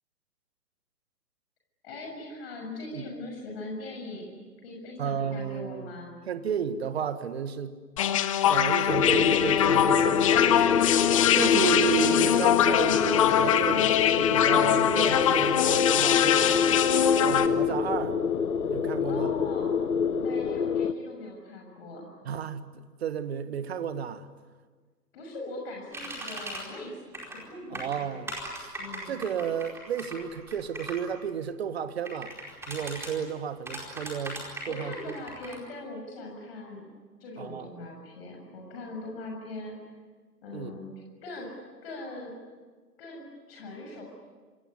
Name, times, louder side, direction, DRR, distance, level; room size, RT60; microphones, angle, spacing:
voice 1, 1.8-4.3 4.6-6.1 19.0-19.7 20.2-22.2 25.1-27.0 27.3-27.9 28.8-29.2 33.7-33.8 34.6-36.8 37.2-39.8 40.4-41.5 41.8-42.3 43.0-44.0, left 2 dB, 35° left, 6.8 m, -41 dB
voice 2, 5.0-5.9 6.3-7.8 8.5-10.8 11.3-16.6 17.2-18.2 18.6-19.3 22.2-24.3 27.7-28.7 29.0-32.3 32.7-34.4 34.7-35.2 37.4-37.7 40.5-40.8, right 8 dB, 40° right, 1.7 m, -32 dB
sound 1, 8.0-17.5, left 10 dB, 20° left, 0.9 m, -23 dB
sound 2, 8.9-20.9, left 6 dB, 65° left, 1.3 m, -26 dB
sound 3, 25.9-26.6 27.1-27.4 27.7-31.0 32.0-33.1 33.7-35.6, right 1 dB, 5° right, 4.6 m, -38 dB
27.0 x 21.5 x 9.8 m
figure-of-eight pair, 130°, 49 cm